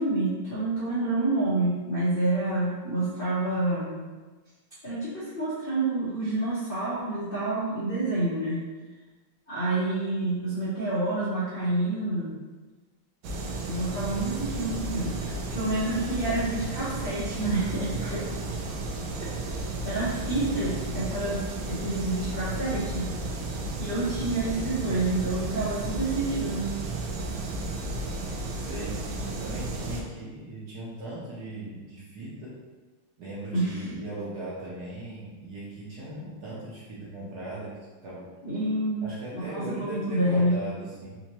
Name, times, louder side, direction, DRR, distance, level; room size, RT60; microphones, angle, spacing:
voice 1, 0.0-4.0 4.8-8.6 9.5-12.4 13.7-18.2 19.2-19.3 19.8-23.1 23.8-26.8 33.5-33.8 38.4-39.0 39.3-40.6, right 2 dB, 55° left, -10 dB, 0.6 m, -28 dB
sound 1, 13.2-30.0, right 2 dB, 80° right, 1.4 m, -33 dB
voice 2, 28.5-32.6 33.2-37.7 38.0-38.3 39.0-41.2, right 1 dB, 60° right, -7 dB, 1.2 m, -38 dB
4.2 x 2.7 x 2.9 m, 1.3 s
omnidirectional pair, 2.3 m